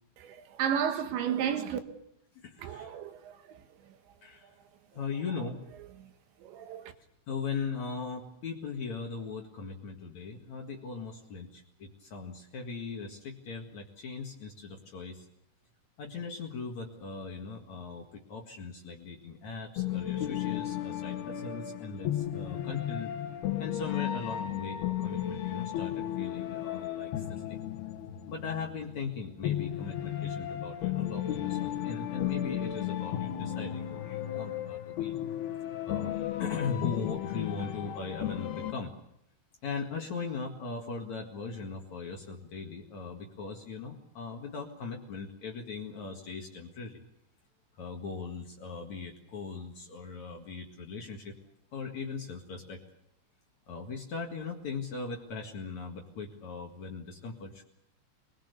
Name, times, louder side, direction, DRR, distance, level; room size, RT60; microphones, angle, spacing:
voice 1, 0.2-1.8 2.6-3.6 6.4-6.9, right 8 dB, 75° right, 3.6 m, -32 dB
voice 2, 2.3-3.0 4.2-4.5 4.9-5.6 7.3-15.3 16.0-23.1 23.6-27.6 28.3-35.1 35.8-38.9 39.6-47.0 47.8-51.4 51.7-52.8 53.7-57.6, left 5 dB, 50° left, 2.6 m, -39 dB
sound 1, 19.8-38.7, left 11 dB, 65° left, 3.1 m, -34 dB
26.5 x 20.5 x 6.8 m
omnidirectional pair, 5.3 m